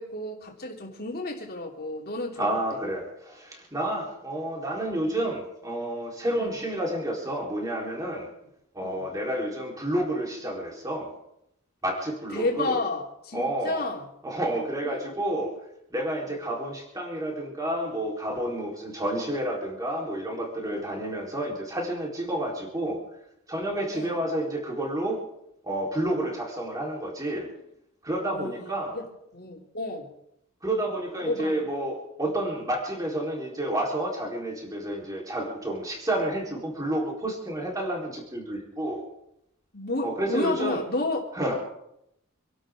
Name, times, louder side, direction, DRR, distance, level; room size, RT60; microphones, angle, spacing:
voice 1, 0.0-2.8 5.1-5.2 6.4-6.5 8.8-9.0 12.3-14.1 14.8-15.2 16.3-16.4 20.7-20.9 23.9-24.2 28.3-28.6 28.9-29.0 29.3-30.1 31.2-31.6 39.7-41.2, left 2 dB, 45° left, 0 dB, 3.2 m, -31 dB
voice 2, 2.4-8.3 8.7-11.1 11.8-12.8 13.3-13.8 14.2-15.5 15.9-23.0 23.5-25.2 25.6-27.5 28.0-29.0 30.6-39.0 40.0-40.8 41.3-41.5, right 1 dB, 15° right, -2 dB, 4.0 m, -30 dB
27.5 x 12.5 x 3.8 m, 0.80 s
head